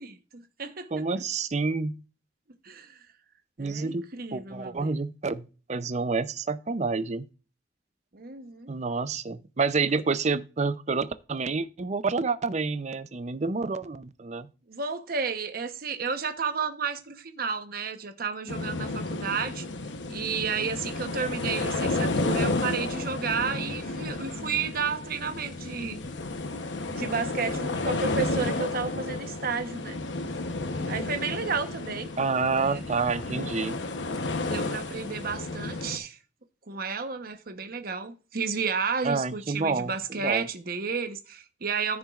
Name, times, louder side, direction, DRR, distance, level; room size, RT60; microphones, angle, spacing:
voice 1, 0.0-1.2 2.6-3.0 3.6-4.9 8.1-8.7 14.7-19.6 20.1-26.0 26.9-30.0 30.9-32.1 32.5-32.8 34.4-36.2 36.7-42.0, right 5 dB, 55° right, 1.0 m, -32 dB
voice 2, 0.9-2.0 3.6-7.3 8.7-14.5 32.2-33.8 39.0-40.5, right 4 dB, 40° right, 0.5 m, -28 dB
sound 1, 18.5-36.0, left 2 dB, 90° left, 0.9 m, -32 dB
14.0 x 6.2 x 2.4 m
head